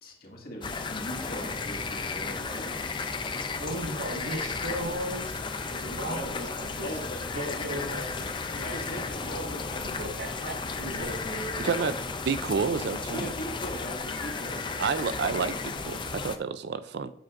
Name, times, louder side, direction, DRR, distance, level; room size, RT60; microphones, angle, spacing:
voice 1, 0.0-2.9 3.9-4.0 6.1-6.5 6.8-10.0 10.9-12.0 13.1-14.6 15.1-15.2, equal, 50° left, 0 dB, 1.9 m, -40 dB
sound 1, 0.6-16.4, left 4 dB, 25° left, 0.5 m, -34 dB
voice 2, 3.5-5.4 5.7-6.9 7.3-8.0 8.5-9.0 9.8-11.4, equal, 75° right, 2 dB, 1.5 m, -37 dB
sound 2, 3.9-16.0, left 2 dB, 70° left, 1.2 m, -48 dB
voice 3, 11.6-11.9 12.3-13.3 14.8-17.1, right 5 dB, 60° right, 12 dB, 0.3 m, -29 dB
8.8 x 7.7 x 2.5 m, 0.63 s
head